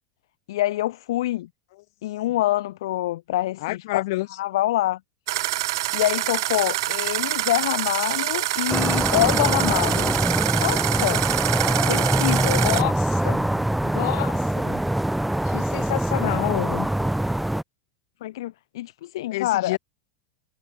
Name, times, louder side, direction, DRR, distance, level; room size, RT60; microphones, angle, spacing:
voice 1, 0.5-1.5 2.0-4.0 4.4-5.0 5.9-10.2 10.6-11.2 11.9-12.8 18.2-19.8, left 15 dB, 75° left, 1.4 m, -26 dB
voice 2, 3.6-4.3 12.6-13.4 13.8-14.8 15.4-16.9 19.3-19.8, left 20 dB, 55° left, 2.6 m, -29 dB
sound 1, 5.3-12.8, right 16 dB, 70° right, 0.9 m, -26 dB
sound 2, 8.7-17.6, right 1 dB, ahead, 1.8 m, -23 dB
supercardioid pair, 170°, 3 cm